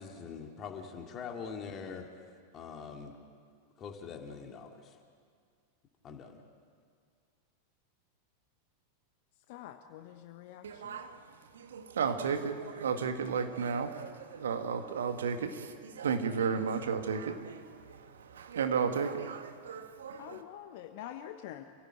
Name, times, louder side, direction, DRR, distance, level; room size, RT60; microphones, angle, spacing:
voice 1, 0.0-2.1 2.5-3.2 3.8-5.0 6.0-6.4, left 6 dB, 30° left, 3 dB, 2.3 m, -43 dB
voice 2, 9.5-11.0 20.2-21.6, left 11 dB, 50° left, 7 dB, 1.1 m, -46 dB
voice 3, 10.6-11.2 11.5-20.4, right 6 dB, 65° right, 7 dB, 1.8 m, -34 dB
28.0 x 17.0 x 9.0 m, 2.1 s
figure-of-eight pair, 90°, 0 cm